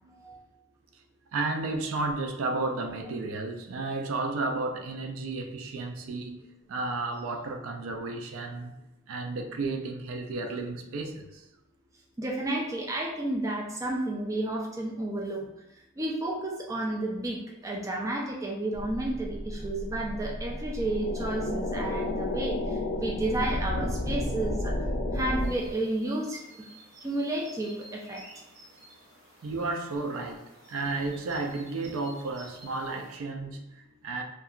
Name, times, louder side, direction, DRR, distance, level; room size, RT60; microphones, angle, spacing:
voice 1, 1.3-6.4 6.7-8.7 9.1-11.4 29.4-34.2, right 3 dB, 85° right, 0.4 m, -33 dB
voice 2, 12.2-15.5 16.0-22.6 22.9-24.7 25.1-26.7 27.0-28.2, right 1 dB, 15° right, 0.3 m, -31 dB
sound 1, 18.7-25.7, left 1 dB, 60° left, 0.4 m, -32 dB
sound 2, 25.4-33.2, right 1 dB, 60° right, 1.2 m, -53 dB
2.7 x 2.3 x 2.4 m
head